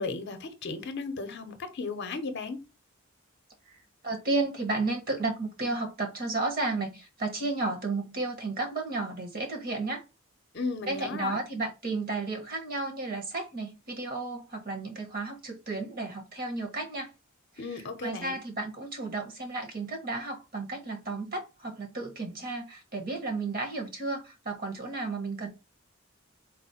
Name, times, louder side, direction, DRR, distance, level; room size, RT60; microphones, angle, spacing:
voice 1, 0.0-2.6 10.5-11.4 17.6-18.3, left 3 dB, 55° left, 0.7 m, -35 dB
voice 2, 4.0-10.0 10.9-17.1 17.6-25.5, right 3 dB, 45° right, 1.2 m, -33 dB
4.1 x 2.1 x 4.1 m
head